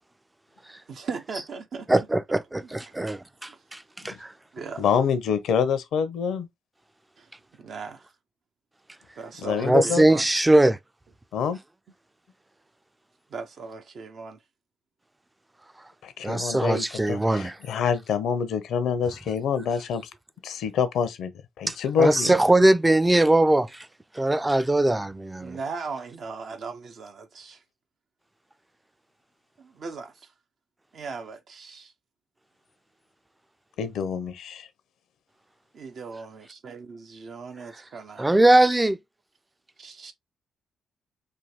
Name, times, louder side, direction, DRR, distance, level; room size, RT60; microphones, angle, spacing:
voice 1, 0.9-2.1 2.6-3.2 3.5-3.6 4.5-4.9 7.2-8.1 9.2-10.3 13.3-14.4 25.4-27.6 29.6-30.3 30.9-31.9 35.7-38.3 39.8-40.1, right 4 dB, 60° right, 0.6 m, -38 dB
voice 2, 1.9-4.3 9.6-10.8 16.2-17.5 21.7-23.9 24.1-25.6 38.2-39.0, right 1 dB, 15° right, 0.3 m, -21 dB
voice 3, 4.8-6.5 9.4-10.0 11.3-11.6 16.0-20.0 20.4-21.3 21.6-22.3 33.8-34.7, left 6 dB, 70° left, 0.5 m, -26 dB
3.2 x 2.2 x 2.8 m
hypercardioid pair, 40°, 0 cm